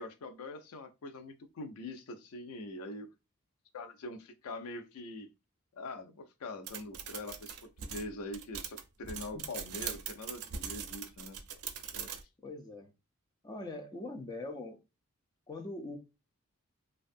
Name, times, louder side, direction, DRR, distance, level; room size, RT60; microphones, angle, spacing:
voice 1, 0.0-3.1 3.7-5.3 5.8-11.4 11.9-12.1, left 2 dB, 90° left, 0.4 m, -43 dB
sound 1, 6.7-12.2, right 7 dB, 85° right, 0.4 m, -41 dB
voice 2, 12.4-12.9 13.4-14.8 15.5-16.0, left 2 dB, 20° left, 0.4 m, -42 dB
2.5 x 2.3 x 2.4 m
head